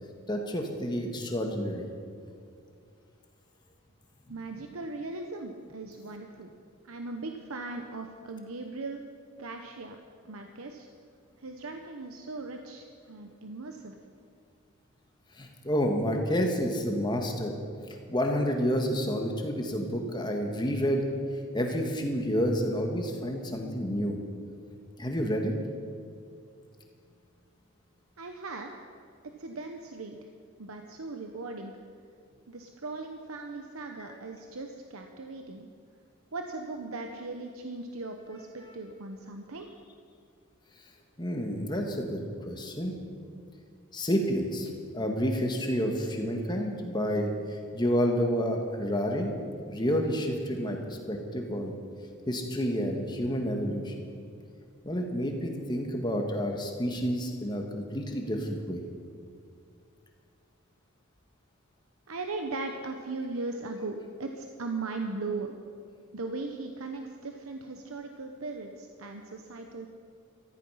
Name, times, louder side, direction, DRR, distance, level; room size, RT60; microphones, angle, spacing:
voice 1, 0.3-1.9 15.4-17.5 18.1-21.0 21.5-24.2 25.0-25.5 41.2-42.9 43.9-49.3 49.7-51.7 52.3-54.1 54.8-58.8, equal, 20° left, 2 dB, 1.6 m, -29 dB
voice 2, 4.3-6.5 6.8-9.0 9.4-10.0 10.2-10.9 11.4-14.0 28.2-28.9 29.4-30.2 30.6-31.8 32.5-35.7 36.3-39.7 62.1-65.5 66.1-69.9, right 3 dB, 80° right, 4 dB, 0.9 m, -38 dB
14.5 x 14.0 x 5.7 m, 2.3 s
head